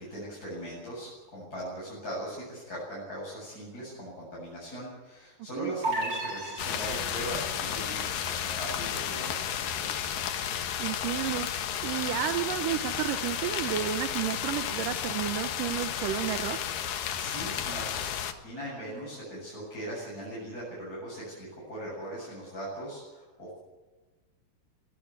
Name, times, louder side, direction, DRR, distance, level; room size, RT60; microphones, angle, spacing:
voice 1, 0.0-9.9 16.9-18.2 18.4-23.6, right 1 dB, 25° left, -7 dB, 8.4 m, -40 dB
sound 1, 5.8-7.5, right 2 dB, 35° right, 4.4 m, -33 dB
sound 2, 6.6-18.3, left 9 dB, 85° left, 3.1 m, -32 dB
voice 2, 10.8-16.6, right 12 dB, 80° right, 10 dB, 2.5 m, -32 dB
24.0 x 18.0 x 8.1 m, 1.3 s
omnidirectional pair, 3.8 m